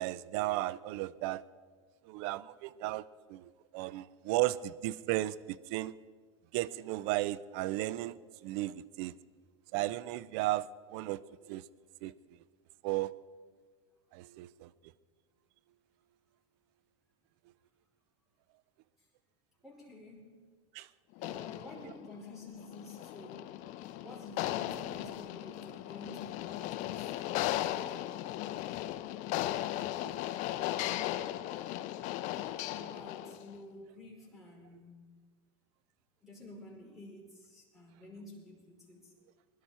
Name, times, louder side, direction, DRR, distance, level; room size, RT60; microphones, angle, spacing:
voice 1, 0.0-1.4 2.1-3.0 3.3-5.9 6.5-8.1 8.4-9.1 9.7-11.2 11.5-11.6 12.0-12.1 12.8-13.1 14.1-14.7 20.7-20.9, right 16 dB, 60° right, 0.6 m, -34 dB
voice 2, 19.6-20.4 21.2-23.4 24.0-27.0 32.8-35.1 36.2-39.1, left 1 dB, ahead, 5.2 m, -51 dB
sound 1, 21.2-33.5, left 14 dB, 55° left, 0.7 m, -37 dB
21.5 x 11.5 x 4.3 m
supercardioid pair, 115°, 15 cm